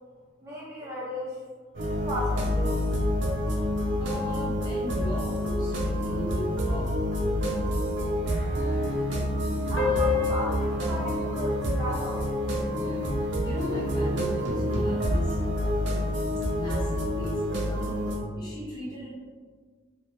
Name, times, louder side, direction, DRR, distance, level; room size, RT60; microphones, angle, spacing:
voice 1, 0.4-1.4 2.1-2.9 9.7-12.4, equal, 15° right, -7 dB, 0.4 m, -35 dB
sound 1, 1.7-18.2, equal, 65° right, 0.6 m, -28 dB
voice 2, 4.0-6.9 12.7-15.4 16.5-18.0 18.3-19.1, left 1 dB, 20° left, -6 dB, 0.7 m, -37 dB
sound 2, 9.8-14.7, left 7 dB, 65° left, 0.6 m, -33 dB
2.8 x 2.1 x 3.0 m, 1.5 s
head